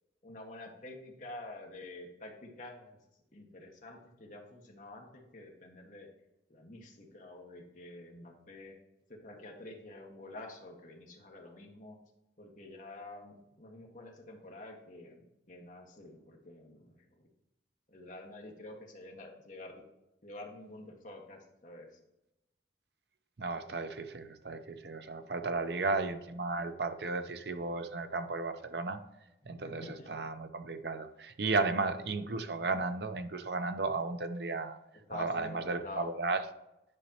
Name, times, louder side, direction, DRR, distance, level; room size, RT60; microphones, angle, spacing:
voice 1, 0.2-3.0 3.3-6.1 6.5-8.8 9.1-12.0 12.4-17.3 17.9-19.8 20.2-22.0 25.5-25.8 29.6-30.2 35.1-36.1, left 2 dB, 45° left, 0 dB, 1.4 m, -48 dB
voice 2, 23.4-29.0 29.5-34.8 35.1-36.4, right 3 dB, 65° right, 8 dB, 0.7 m, -34 dB
9.9 x 5.2 x 2.9 m, 0.92 s
head